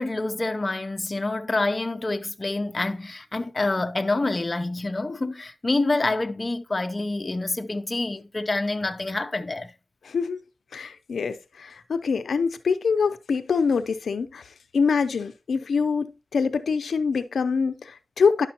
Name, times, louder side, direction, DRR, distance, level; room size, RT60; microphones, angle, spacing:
voice 1, 0.0-9.7, left 2 dB, 25° left, 0.6 m, -27 dB
voice 2, 10.0-10.4 10.7-14.4 14.7-18.5, left 5 dB, 85° left, 0.6 m, -25 dB
10.5 x 6.0 x 2.9 m
wide cardioid pair, 105°, 0 cm